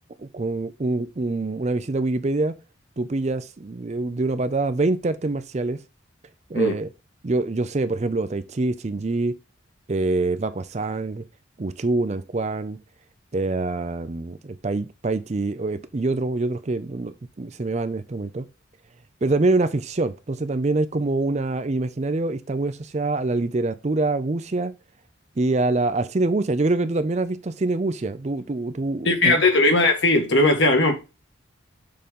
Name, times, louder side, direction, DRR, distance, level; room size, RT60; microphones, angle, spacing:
voice 1, 0.2-2.5 3.0-5.8 6.5-6.9 7.2-9.4 9.9-11.2 11.6-12.8 13.3-18.5 19.2-24.7 25.4-29.4, right 2 dB, 35° right, 0.5 m, -25 dB
voice 2, 29.1-30.9, left 2 dB, 65° left, 1.8 m, -18 dB
6.7 x 3.9 x 5.3 m
head